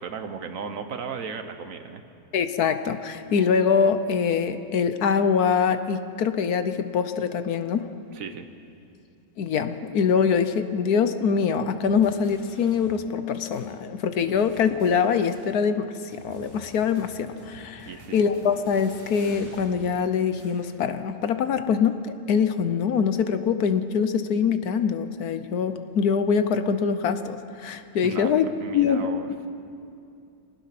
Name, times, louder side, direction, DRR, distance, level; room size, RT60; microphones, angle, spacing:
voice 1, 0.0-2.0 8.1-8.5 17.8-18.2 28.0-29.3, right 6 dB, 55° right, 8 dB, 1.5 m, -35 dB
voice 2, 2.3-7.9 9.4-28.4 28.7-29.4, left 6 dB, 70° left, 10 dB, 1.4 m, -24 dB
sound 1, 11.8-13.3 13.5-13.7 14.1-15.8 16.1-20.9, equal, 15° left, 7.6 m, -49 dB
25.0 x 19.5 x 6.0 m, 2.5 s
omnidirectional pair, 1.7 m